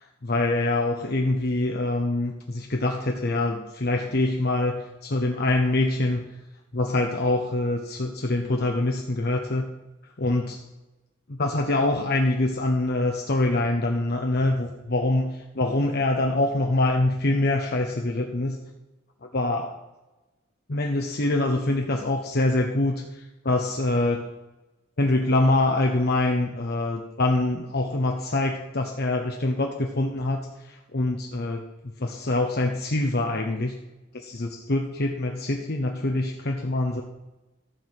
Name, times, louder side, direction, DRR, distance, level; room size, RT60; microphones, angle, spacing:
voice 1, 0.0-6.3 6.7-9.7 10.2-10.6 11.3-18.6 19.3-19.7 20.7-24.2 25.0-31.6 32.0-33.8 34.1-37.0, left 2 dB, 50° left, 2 dB, 0.9 m, -25 dB
14.0 x 4.8 x 7.6 m, 1.1 s
head